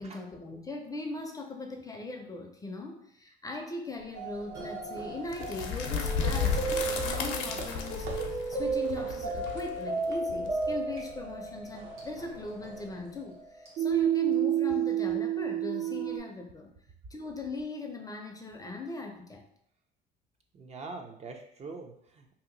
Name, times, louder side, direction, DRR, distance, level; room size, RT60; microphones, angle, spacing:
voice 1, 0.0-8.1 8.5-16.7 17.1-19.4, left 2 dB, 20° left, 3 dB, 0.5 m, -39 dB
sound 1, 3.9-13.6, right 3 dB, 65° right, 0.9 m, -49 dB
sound 2, 4.1-16.2, right 7 dB, 90° right, 1.3 m, -32 dB
sound 3, 5.3-11.1, left 6 dB, 85° left, 0.6 m, -33 dB
voice 2, 20.5-22.3, right 3 dB, 30° right, 3 dB, 0.5 m, -44 dB
2.8 x 2.5 x 3.8 m, 0.68 s
cardioid pair, 105°, 20 cm